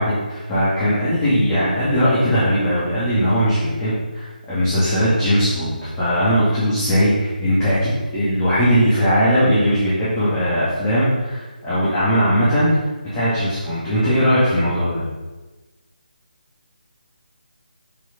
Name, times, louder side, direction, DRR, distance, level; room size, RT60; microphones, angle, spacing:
voice 1, 0.0-12.7 13.1-15.0, equal, 10° left, -13 dB, 2.4 m, -19 dB
6.9 x 6.2 x 5.3 m, 1.2 s
figure-of-eight pair, 160°, 5 cm